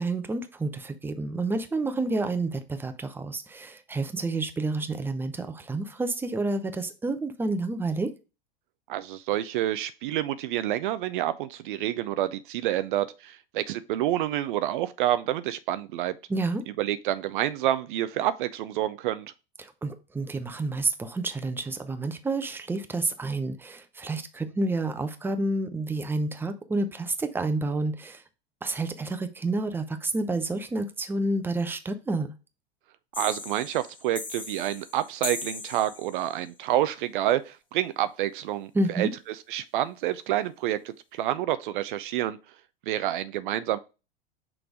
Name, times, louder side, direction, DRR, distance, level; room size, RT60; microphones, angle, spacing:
voice 1, 0.0-8.1 16.3-16.6 19.6-28.2 28.6-32.3 38.7-39.1, right 2 dB, 5° right, 0.6 m, -29 dB
voice 2, 8.9-16.1 16.8-19.3 33.2-42.4 42.9-43.8, right 13 dB, 60° right, 0.5 m, -28 dB
sound 1, 33.1-36.4, left 3 dB, 15° left, 1.2 m, -38 dB
6.1 x 3.3 x 5.0 m
hypercardioid pair, 90°, 29 cm